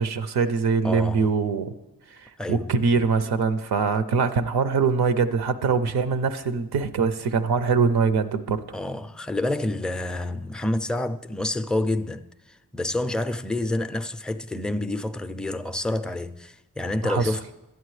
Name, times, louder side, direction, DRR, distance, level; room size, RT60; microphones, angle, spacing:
voice 1, 0.0-1.7 2.2-8.6 17.0-17.3, right 5 dB, 80° right, 0.6 m, -23 dB
voice 2, 0.8-1.3 2.4-2.7 8.7-17.5, left 1 dB, ahead, 0.3 m, -28 dB
12.5 x 9.3 x 3.2 m
cardioid pair, 50°, 38 cm